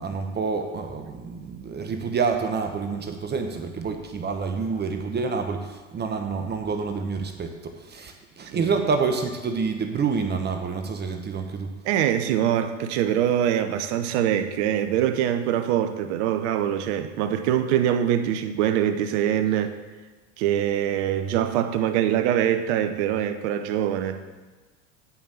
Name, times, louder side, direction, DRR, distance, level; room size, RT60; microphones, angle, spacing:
voice 1, 0.0-11.7, right 5 dB, 25° right, 5 dB, 1.1 m, -28 dB
voice 2, 11.8-19.7 20.4-24.2, right 10 dB, 60° right, 10 dB, 0.9 m, -23 dB
9.6 x 5.4 x 7.0 m, 1.3 s
hypercardioid pair, 85°, 38 cm